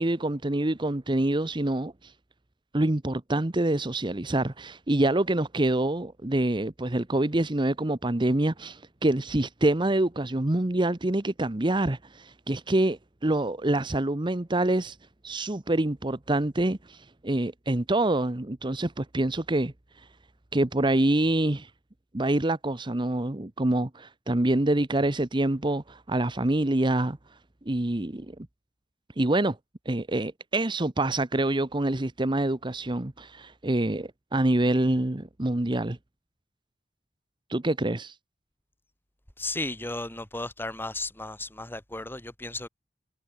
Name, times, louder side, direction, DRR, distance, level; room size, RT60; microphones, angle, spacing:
voice 1, 0.0-2.1 2.7-15.0 15.2-19.7 20.5-21.7 22.1-27.2 27.7-28.3 29.2-29.6 29.9-36.0 37.5-38.1, right 1 dB, 25° right, 1.0 m, -26 dB
voice 2, 39.4-42.7, left 2 dB, 15° left, 2.8 m, -34 dB
head